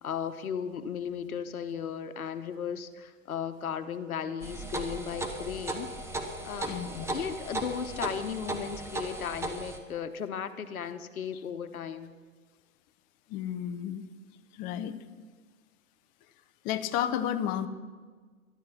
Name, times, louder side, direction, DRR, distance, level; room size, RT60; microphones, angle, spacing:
voice 1, 0.0-5.9 6.4-12.1, left 7 dB, 75° left, 10 dB, 1.1 m, -36 dB
sound 1, 4.4-9.8, right 2 dB, 5° right, 0.9 m, -36 dB
voice 2, 6.6-7.2 13.3-14.1 14.5-15.0 16.6-17.7, left 10 dB, 20° left, 10 dB, 0.5 m, -32 dB
12.0 x 11.5 x 5.8 m, 1.5 s
hypercardioid pair, 115°, 43 cm